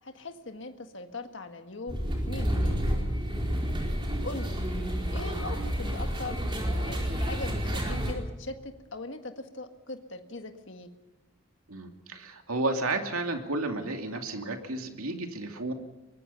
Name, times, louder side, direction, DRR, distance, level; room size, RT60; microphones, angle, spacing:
voice 1, 0.0-2.0 2.3-2.8 4.2-4.6 5.1-6.4 6.8-10.9, left 2 dB, 60° left, 6 dB, 1.7 m, -40 dB
sound 1, 1.9-8.1, equal, 20° right, 4.5 m, -30 dB
voice 2, 11.7-15.7, right 2 dB, 90° right, 4 dB, 2.7 m, -32 dB
24.0 x 21.0 x 5.7 m, 1.1 s
head